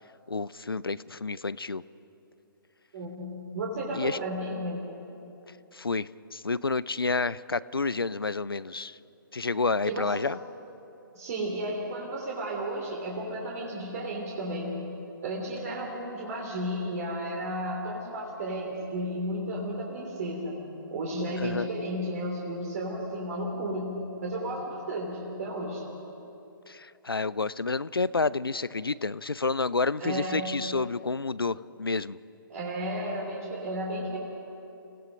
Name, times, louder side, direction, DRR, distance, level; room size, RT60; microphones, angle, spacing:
voice 1, 0.3-1.8 3.9-4.2 5.7-9.0 9.3-10.4 21.4-21.7 26.7-32.2, left 3 dB, 85° left, 19 dB, 0.5 m, -29 dB
voice 2, 2.9-4.8 9.9-10.0 11.1-14.8 15.2-20.6 20.9-25.8 30.0-30.5 32.5-34.2, right 1 dB, 45° right, -1 dB, 3.3 m, -33 dB
29.5 x 17.5 x 5.2 m, 2.9 s
figure-of-eight pair, 130°, 12 cm